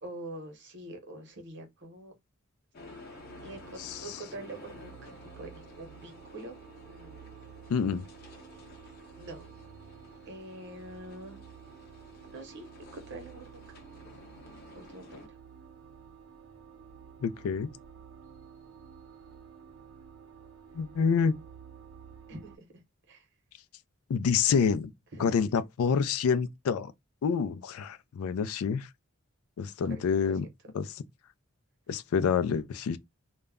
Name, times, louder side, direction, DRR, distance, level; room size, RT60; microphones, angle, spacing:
voice 1, 0.0-2.1 3.4-6.6 6.9-7.3 9.1-9.5 10.3-11.4 12.2-13.6 14.7-15.4 22.3-22.7 23.1-23.3 25.1-25.4 29.9-30.5, right 1 dB, 55° right, 0.8 m, -45 dB
sound 1, 2.7-15.3, left 3 dB, 45° left, 0.7 m, -53 dB
sound 2, 2.8-22.6, right 7 dB, 85° right, 0.6 m, -51 dB
voice 2, 7.7-8.1 17.2-17.7 20.7-21.3 24.1-24.9 25.2-26.9 27.2-28.9 29.6-30.5 30.7-30.9 31.9-33.0, left 6 dB, 75° left, 0.3 m, -27 dB
2.2 x 2.0 x 3.5 m
head